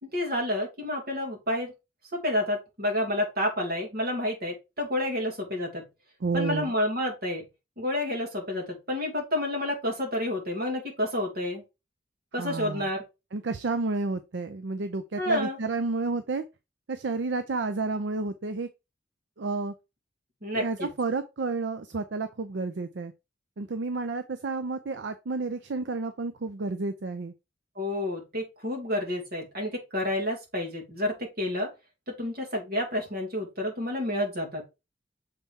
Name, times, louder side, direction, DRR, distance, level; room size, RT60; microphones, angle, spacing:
voice 1, 0.0-1.7 2.1-5.9 6.3-7.5 7.8-11.6 12.3-13.0 15.2-15.6 20.4-20.9 27.8-31.7 32.2-34.6, left 1 dB, 55° right, 2.7 m, -29 dB
voice 2, 6.2-6.7 12.4-12.9 13.3-16.4 16.9-18.7 19.4-19.7 20.5-23.1 23.6-27.3, right 3 dB, 75° right, 0.5 m, -31 dB
6.7 x 4.2 x 3.6 m
head